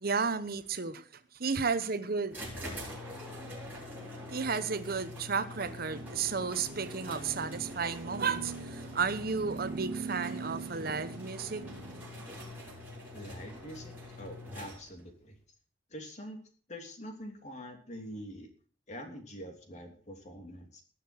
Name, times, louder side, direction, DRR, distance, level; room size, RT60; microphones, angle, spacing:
voice 1, 0.0-1.0 1.4-2.4 4.3-12.2, right 5 dB, 55° right, 1.0 m, -33 dB
sound 1, 2.3-15.1, left 1 dB, 10° right, 7.0 m, -45 dB
voice 2, 13.1-15.4 15.9-16.4 16.7-18.5 18.9-20.8, equal, 40° left, 3.1 m, -45 dB
20.0 x 6.8 x 6.3 m
head